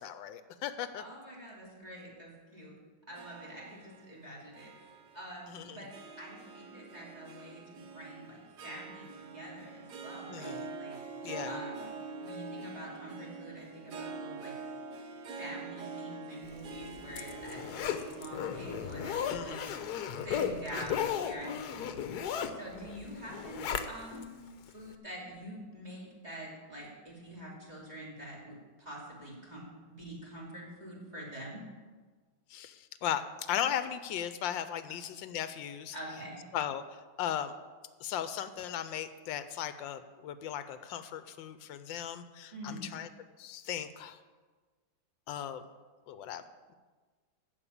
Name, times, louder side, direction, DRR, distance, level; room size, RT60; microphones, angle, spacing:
voice 1, 0.0-1.0 5.5-5.9 10.3-10.7 11.2-11.6 19.3-19.8 32.5-36.0 36.5-37.5 38.0-43.1 43.4-44.2 45.3-45.6 46.1-46.4, left 10 dB, 85° left, 12 dB, 1.3 m, -37 dB
voice 2, 0.9-2.7 3.1-4.7 5.1-5.9 6.2-11.0 11.4-11.9 12.2-14.6 15.4-19.7 20.2-24.4 24.7-31.6 35.9-36.4 42.5-42.8, right 1 dB, 20° right, -3 dB, 3.0 m, -46 dB
Harp, 3.1-21.6, right 4 dB, 65° right, 1.5 m, -46 dB
Zipper (clothing), 16.7-24.3 24.7-24.8, left 8 dB, 65° left, 1.2 m, -36 dB
14.0 x 5.4 x 8.6 m, 1.4 s
omnidirectional pair, 2.1 m